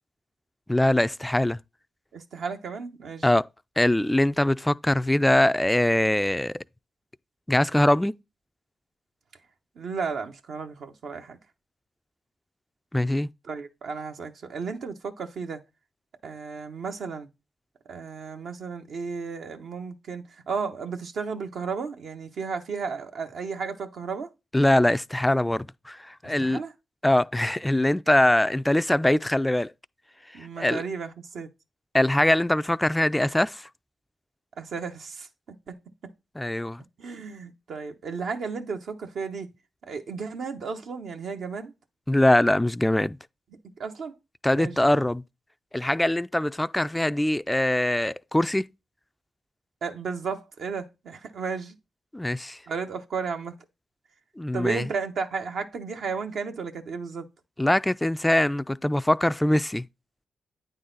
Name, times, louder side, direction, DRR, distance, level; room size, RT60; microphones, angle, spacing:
voice 1, 0.7-1.6 3.2-3.5 3.8-6.5 7.5-8.1 12.9-13.3 24.5-26.6 27.0-29.7 30.6-30.8 31.9-33.7 36.4-36.8 42.1-43.2 44.4-45.2 45.7-48.7 52.1-52.6 54.4-54.9 57.6-59.8, left 1 dB, 10° left, 0.3 m, -22 dB
voice 2, 2.1-3.3 9.7-11.4 13.4-15.6 16.2-17.3 17.9-24.3 26.4-26.7 30.3-31.5 34.6-35.3 35.7-35.8 37.0-39.5 39.8-41.7 43.8-44.2 44.5-44.8 49.8-51.8 52.7-53.6 54.5-57.3, right 5 dB, 70° right, 0.9 m, -33 dB
9.2 x 4.0 x 3.9 m
supercardioid pair, 45°, 0 cm